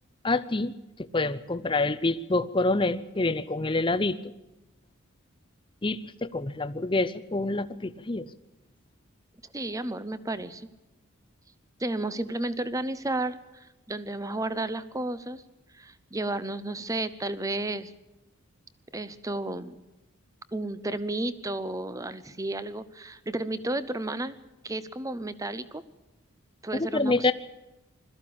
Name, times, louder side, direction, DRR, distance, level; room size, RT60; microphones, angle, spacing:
voice 1, 0.2-0.7 1.1-4.2 5.8-8.2 26.7-27.3, left 2 dB, 20° left, 13 dB, 0.6 m, -27 dB
voice 2, 9.5-10.7 11.8-15.4 15.7-17.9 18.9-19.8 20.5-24.4 24.6-25.8 26.6-27.3, right 2 dB, 15° right, 14 dB, 0.7 m, -32 dB
21.5 x 14.0 x 8.7 m, 1.0 s
head